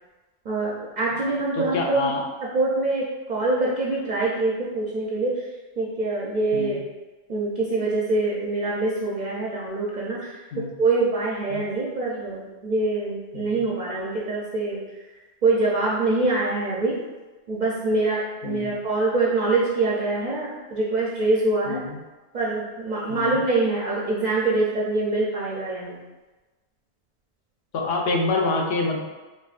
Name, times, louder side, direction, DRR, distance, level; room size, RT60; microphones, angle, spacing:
voice 1, 0.5-2.1 2.5-5.3 5.8-6.8 7.3-10.3 10.8-14.8 15.4-16.9 17.5-21.8 22.3-26.0, right 2 dB, 55° right, -5 dB, 0.6 m, -24 dB
voice 2, 1.5-2.2 6.5-6.8 10.5-10.7 11.5-11.6 13.3-13.7 18.4-18.7 21.7-22.0 23.1-23.4 27.7-29.0, left 3 dB, 70° left, 1 dB, 0.8 m, -27 dB
4.3 x 2.4 x 2.4 m, 1.2 s
omnidirectional pair, 1.1 m